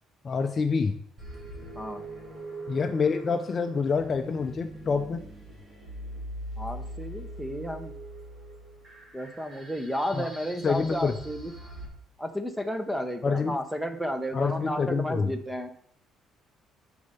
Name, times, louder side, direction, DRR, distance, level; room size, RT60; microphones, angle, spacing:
voice 1, 0.2-0.9 2.7-5.2 10.1-10.3 10.6-11.2 13.2-13.6 14.3-15.4, left 5 dB, 30° left, 7 dB, 0.5 m, -27 dB
sound 1, 1.2-11.8, right 1 dB, 25° right, 2.5 m, -42 dB
voice 2, 6.6-7.9 9.1-11.5 12.2-15.7, equal, 5° right, 8 dB, 0.8 m, -32 dB
6.7 x 5.5 x 6.6 m, 0.63 s
cardioid pair, 160°, 0 cm